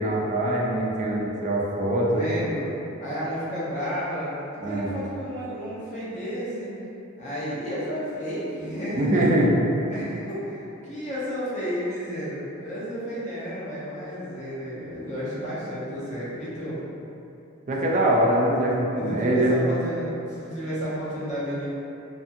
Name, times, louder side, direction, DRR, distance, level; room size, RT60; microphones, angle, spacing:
voice 1, 0.0-2.6 4.6-4.9 8.9-9.5 17.7-19.6, right 1 dB, 35° right, -3 dB, 0.3 m, -23 dB
voice 2, 2.1-2.6 3.0-4.3 4.6-6.7 7.2-9.2 9.9-16.8 19.0-21.7, equal, 35° left, -10 dB, 0.8 m, -32 dB
2.6 x 2.6 x 2.4 m, 2.9 s
head